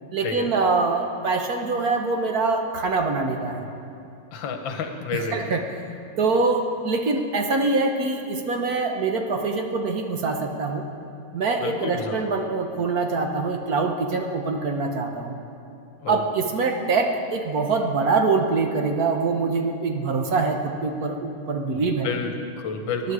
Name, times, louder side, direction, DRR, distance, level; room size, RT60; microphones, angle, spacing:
voice 1, 0.1-3.7 5.1-5.6 6.2-10.8 11.3-15.3 16.1-22.1 23.0-23.1, right 3 dB, 55° right, 4 dB, 1.3 m, -24 dB
voice 2, 4.3-5.4 11.6-12.2 16.0-16.2 21.7-23.1, left 5 dB, 75° left, 6 dB, 1.8 m, -30 dB
19.0 x 11.0 x 4.8 m, 2.6 s
omnidirectional pair, 2.1 m